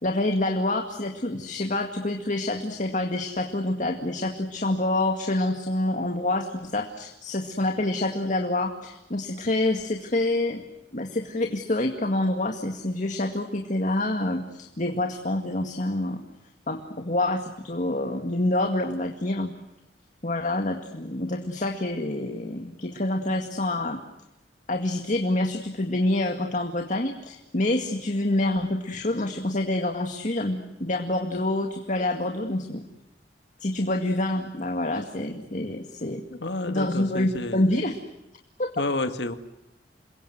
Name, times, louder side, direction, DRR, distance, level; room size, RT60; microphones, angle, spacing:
voice 1, 0.0-10.6 10.9-16.2 16.7-19.5 20.2-24.0 24.7-32.9 33.6-36.2 36.7-38.0 38.6-38.8, left 1 dB, 45° left, 5 dB, 2.1 m, -27 dB
voice 2, 36.3-37.7 38.8-39.4, left 2 dB, 75° left, 8 dB, 1.9 m, -30 dB
28.5 x 23.0 x 7.9 m, 0.91 s
head